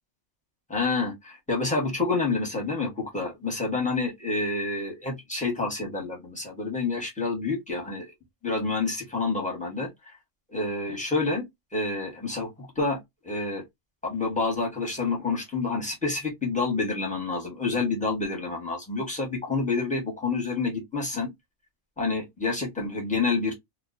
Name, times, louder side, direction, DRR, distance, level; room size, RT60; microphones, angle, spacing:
voice 1, 0.7-8.1 8.4-10.1 10.5-11.4 11.7-13.0 13.2-13.6 14.0-21.3 22.0-23.5, left 3 dB, 5° left, 0.8 m, -28 dB
2.3 x 2.2 x 2.4 m
omnidirectional pair, 1.3 m